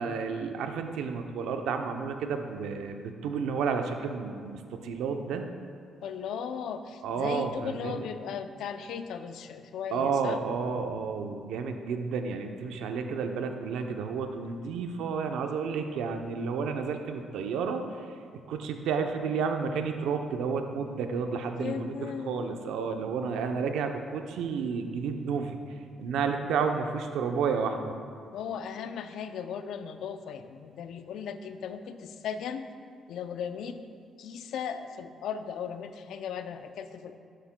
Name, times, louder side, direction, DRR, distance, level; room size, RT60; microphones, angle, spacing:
voice 1, 0.0-3.0 3.2-5.5 7.0-8.0 9.9-18.1 18.5-25.6 26.0-27.9, right 5 dB, 85° right, 5 dB, 0.6 m, -31 dB
voice 2, 6.0-10.4 21.5-22.6 28.3-32.7 33.1-33.8 34.2-37.2, left 7 dB, 80° left, 9 dB, 0.4 m, -37 dB
11.5 x 8.1 x 2.2 m, 2.2 s
cardioid pair, 90°, 0 cm